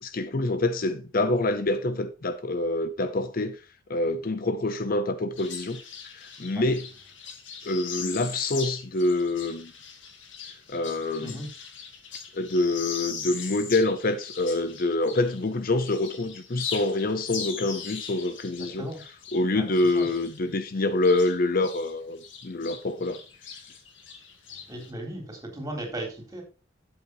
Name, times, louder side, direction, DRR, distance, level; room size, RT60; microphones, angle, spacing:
voice 1, 0.0-3.6 3.9-6.9 7.6-9.7 10.7-11.4 12.3-18.9 19.3-23.2, left 2 dB, 50° left, 0.7 m, -26 dB
sound 1, 5.4-15.5 15.8-21.9 22.2-24.9, left 6 dB, 75° left, 2.0 m, -40 dB
voice 2, 19.6-20.1 24.7-26.4, right 1 dB, 20° right, 3.8 m, -36 dB
12.0 x 8.0 x 3.1 m
head